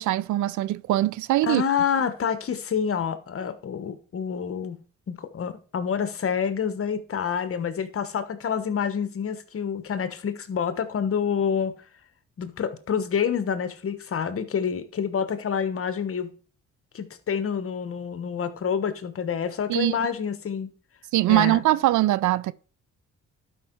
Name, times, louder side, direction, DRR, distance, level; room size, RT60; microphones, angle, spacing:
voice 1, 0.0-1.6 19.7-20.1 21.1-22.5, right 15 dB, 75° right, 0.5 m, -22 dB
voice 2, 1.4-4.8 5.1-11.7 12.4-16.3 16.9-20.7 21.3-21.6, left 7 dB, 50° left, 1.2 m, -28 dB
12.0 x 5.4 x 4.6 m
cardioid pair, 90°, 30 cm